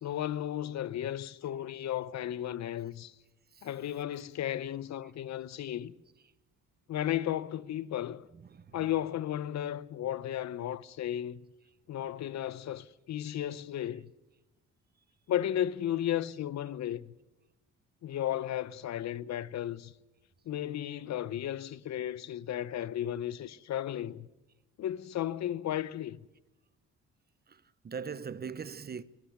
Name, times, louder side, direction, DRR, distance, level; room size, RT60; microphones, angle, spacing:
voice 1, 0.0-3.1 3.6-5.9 6.9-8.3 8.7-11.4 11.9-14.1 15.3-17.1 18.0-19.9 20.5-24.3 24.8-26.2, left 11 dB, 65° left, 0.8 m, -34 dB
voice 2, 8.3-9.1 21.4-21.5 27.5-27.6 27.8-29.0, right 6 dB, 30° right, 0.9 m, -41 dB
23.0 x 12.0 x 9.5 m
cardioid pair, 90°, 30 cm